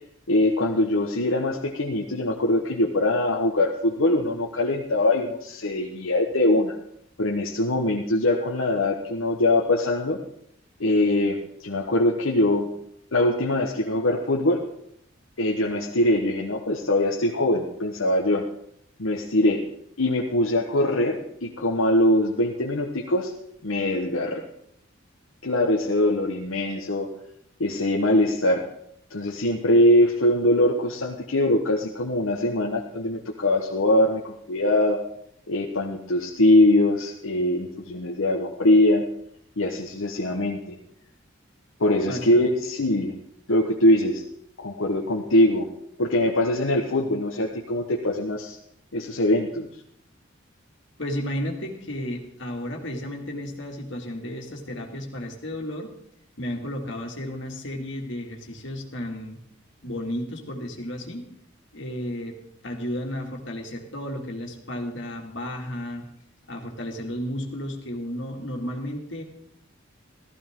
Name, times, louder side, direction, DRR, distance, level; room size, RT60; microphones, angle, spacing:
voice 1, 0.3-6.8 7.2-10.2 10.8-12.7 13.1-14.6 15.4-18.5 19.0-19.6 20.0-23.3 23.6-24.4 25.4-27.1 27.6-28.6 29.1-35.0 35.5-39.0 39.6-40.8 41.8-43.1 43.5-44.2 44.6-45.7 46.0-48.6 48.9-49.7, left 1 dB, 80° left, 0 dB, 1.2 m, -22 dB
voice 2, 42.1-42.5 51.0-55.9 56.4-59.4 59.8-61.2 61.7-62.4 62.6-66.1 66.5-69.2, equal, 60° left, 1 dB, 2.3 m, -33 dB
14.5 x 14.5 x 3.7 m, 0.72 s
head